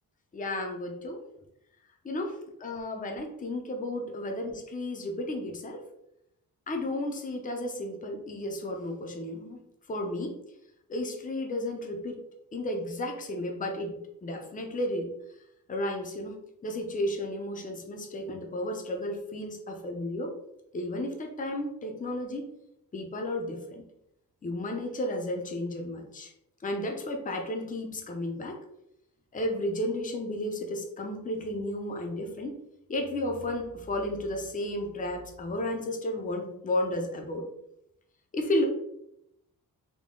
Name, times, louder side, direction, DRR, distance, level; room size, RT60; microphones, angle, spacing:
voice 1, 0.3-1.2 2.0-5.8 6.7-9.6 9.9-10.3 10.9-12.2 12.5-15.1 15.7-20.3 20.7-22.5 22.9-23.8 24.4-26.3 26.6-28.6 29.3-32.6 32.9-37.4 38.3-38.7, left 1 dB, 20° left, 2 dB, 0.5 m, -33 dB
3.6 x 2.1 x 3.7 m, 0.81 s
wide cardioid pair, 130°, 37 cm